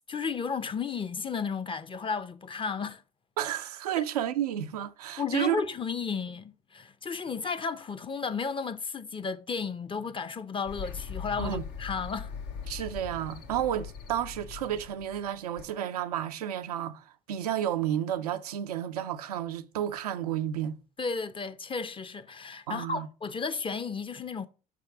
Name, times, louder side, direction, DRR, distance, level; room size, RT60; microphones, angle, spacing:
voice 1, 0.1-3.0 4.0-4.1 5.2-12.3 21.0-24.5, left 5 dB, 25° left, 0.6 m, -33 dB
voice 2, 3.4-5.6 11.4-11.6 12.7-20.8 22.7-23.1, right 11 dB, 90° right, 0.4 m, -31 dB
sound 1, 10.7-15.7, left 6 dB, 65° left, 0.9 m, -40 dB
5.7 x 3.6 x 5.6 m
hypercardioid pair, 55°, 19 cm